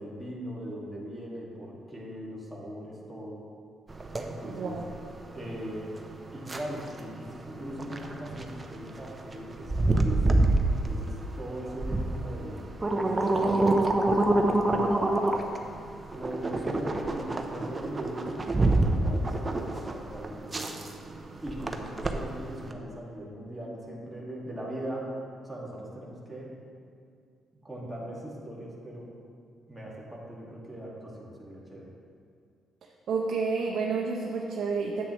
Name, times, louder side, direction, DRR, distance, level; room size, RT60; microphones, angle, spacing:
voice 1, 0.0-3.4 4.2-4.8 5.3-6.0 6.3-10.2 10.8-12.6 12.9-15.5 16.1-20.7 21.4-25.1 25.4-26.5 27.6-29.1 29.7-31.9, right 1 dB, 5° right, -5 dB, 2.0 m, -40 dB
sound 1, 3.9-22.7, right 2 dB, 25° right, 0.7 m, -28 dB
voice 2, 4.4-4.9 33.1-35.0, right 4 dB, 65° right, -1 dB, 0.7 m, -30 dB
9.5 x 8.0 x 3.1 m, 2.3 s
cardioid pair, 90°, 0 cm